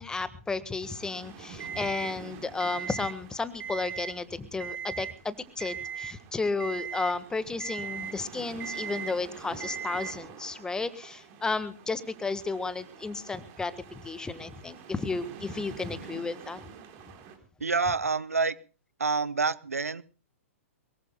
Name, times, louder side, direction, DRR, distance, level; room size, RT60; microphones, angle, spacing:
voice 1, 0.0-16.6, left 3 dB, 10° left, 13 dB, 1.5 m, -33 dB
sound 1, 0.8-17.4, right 6 dB, 40° right, 3.9 m, -48 dB
Alarm, 1.6-2.1 2.6-3.1 3.5-4.1 4.6-5.1 5.6-6.1 6.6-7.1 7.6-8.1 8.6-9.1 9.6-10.1, right 8 dB, 20° right, 1.4 m, -37 dB
voice 2, 17.6-18.6 19.0-20.0, right 4 dB, 85° right, 18 dB, 0.9 m, -27 dB
23.0 x 21.5 x 2.2 m, 0.35 s
figure-of-eight pair, 115°, 8 cm